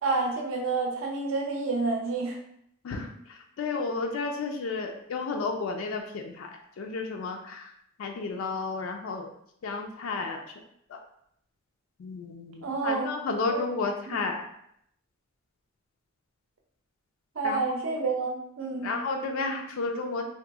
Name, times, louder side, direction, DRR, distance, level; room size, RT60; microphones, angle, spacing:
voice 1, 0.0-2.4 12.6-13.1 13.5-13.6 14.1-14.2 17.4-19.0, right 3 dB, 80° right, 0 dB, 0.6 m, -29 dB
voice 2, 2.8-6.5 6.8-7.7 8.0-9.3 9.6-10.4 10.9-11.0 12.0-14.5 17.4-17.6 18.8-20.2, left 3 dB, 85° left, 2 dB, 0.4 m, -32 dB
2.8 x 2.0 x 3.4 m, 0.71 s
head